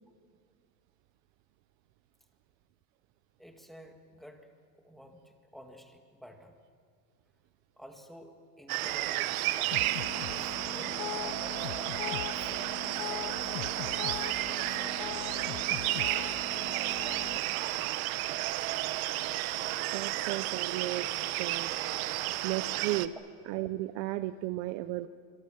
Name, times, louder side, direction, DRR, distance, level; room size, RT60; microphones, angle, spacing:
voice 1, 3.4-4.5 4.7-6.6 7.8-9.9 10.2-12.0 12.3-12.6 13.4-15.0 15.2-16.6, equal, ahead, 1.9 m, -51 dB
sound 1, 8.7-23.1, right 16 dB, 75° right, 1.1 m, -32 dB
sound 2, 9.7-17.4, left 14 dB, 80° left, 1.0 m, -40 dB
voice 2, 19.9-21.7 22.4-23.1 23.5-25.1, right 16 dB, 50° right, 0.7 m, -34 dB
26.5 x 25.0 x 7.0 m
supercardioid pair, 160°, 43 cm